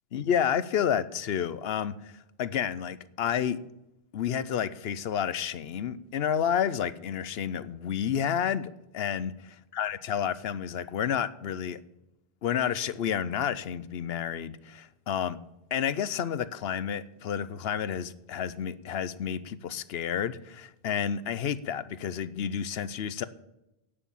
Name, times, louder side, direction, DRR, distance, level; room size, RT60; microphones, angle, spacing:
voice 1, 0.1-2.1 2.4-3.6 4.1-11.8 12.4-15.4 15.7-23.3, left 8 dB, 75° left, 16 dB, 0.9 m, -30 dB
17.0 x 6.8 x 7.2 m, 0.93 s
omnidirectional pair, 1.0 m